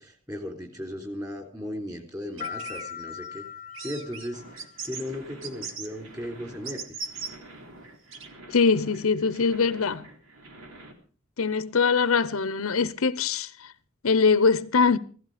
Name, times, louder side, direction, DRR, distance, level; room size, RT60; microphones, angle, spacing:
voice 1, 0.0-3.4 3.8-6.8, left 1 dB, 15° right, 3.5 m, -36 dB
sound 1, 2.4-5.1, left 8 dB, 35° left, 0.8 m, -40 dB
sound 2, 2.4-3.3 3.7-4.3 4.6-5.1 5.4-5.9 6.6-7.3 8.1-8.3, right 5 dB, 65° right, 1.8 m, -38 dB
sound 3, 4.3-10.9, right 1 dB, 90° right, 3.4 m, -48 dB
voice 2, 8.5-10.0 11.4-13.7 14.0-15.0, left 5 dB, 80° left, 0.8 m, -22 dB
16.5 x 14.0 x 5.0 m
head